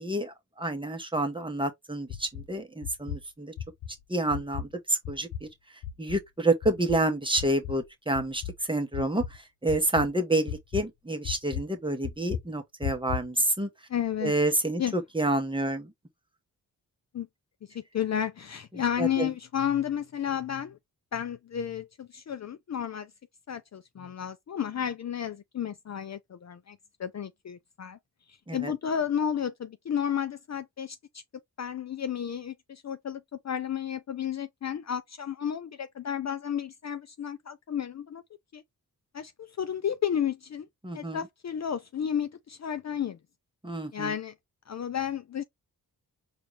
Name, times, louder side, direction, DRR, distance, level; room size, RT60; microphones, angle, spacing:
voice 1, 0.0-3.5 4.1-5.5 6.0-8.4 8.7-13.7 14.2-15.9 19.0-19.3 28.5-28.7 40.8-41.2 43.6-44.1, right 1 dB, 15° right, 1.1 m, -28 dB
sound 1, 2.1-2.5 2.8-3.2 3.6-3.9 4.3-4.7 5.0-5.5 5.8-6.2 6.6-7.0 7.4-7.9 8.1-8.6 8.9-9.4 9.7-10.1 10.5-10.8 11.2-11.7 12.0-12.4 12.8-13.3, left 9 dB, 85° left, 0.7 m, -35 dB
voice 2, 13.9-14.3 14.8-14.9 17.1-17.3 17.7-20.8 21.1-23.1 23.5-28.0 28.5-31.0 31.6-38.2 38.5-38.6 39.1-40.7 40.9-43.2 43.9-44.3 44.7-45.4, left 9 dB, 45° left, 0.5 m, -32 dB
4.4 x 2.5 x 3.3 m
cardioid pair, 80°, 38 cm